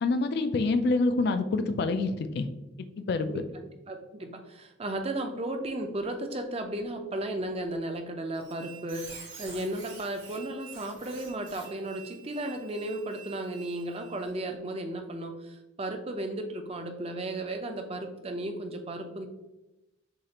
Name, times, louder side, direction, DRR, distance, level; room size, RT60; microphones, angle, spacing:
voice 1, 0.0-2.5 3.0-3.3, left 3 dB, 55° left, 9 dB, 0.3 m, -26 dB
voice 2, 3.3-19.3, right 1 dB, 30° right, 5 dB, 0.5 m, -35 dB
Squeak, 8.3-14.3, right 6 dB, 70° right, 1.3 m, -48 dB
6.4 x 2.4 x 2.8 m, 0.98 s
head